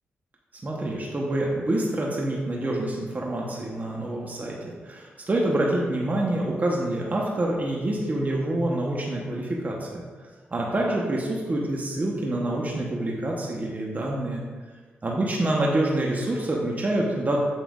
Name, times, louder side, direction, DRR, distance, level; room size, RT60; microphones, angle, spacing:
voice 1, 0.6-10.0 10.5-14.4 15.0-17.4, right 1 dB, 40° right, -2 dB, 1.1 m, -26 dB
7.2 x 5.3 x 2.5 m, 1.4 s
supercardioid pair, 45°, 4 cm